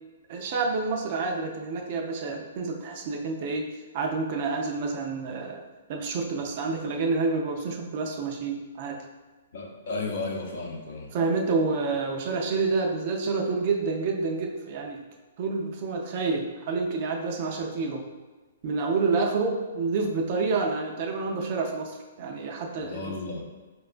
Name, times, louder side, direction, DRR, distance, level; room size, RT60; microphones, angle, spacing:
voice 1, 0.3-5.6 5.9-9.0 11.1-15.0 15.4-18.0 18.6-23.1, right 4 dB, 35° right, 2 dB, 0.4 m, -28 dB
voice 2, 9.5-11.1 22.8-23.5, left 3 dB, 60° left, 1 dB, 0.6 m, -34 dB
4.5 x 2.2 x 2.4 m, 1.3 s
hypercardioid pair, 170°, 0 cm